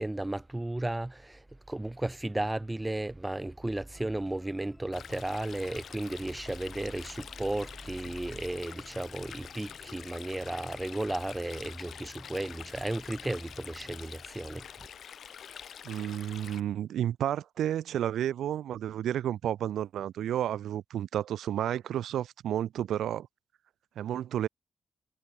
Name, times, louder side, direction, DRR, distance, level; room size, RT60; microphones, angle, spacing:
voice 1, 0.0-14.9, right 1 dB, 10° right, 1.4 m, -34 dB
sound 1, 3.9-14.1, left 2 dB, 15° left, 3.4 m, -56 dB
Stream, 4.9-16.6, left 8 dB, 65° left, 7.1 m, -46 dB
voice 2, 15.8-23.3 24.0-24.5, right 11 dB, 90° right, 0.8 m, -31 dB
cardioid pair, 100°, 0 cm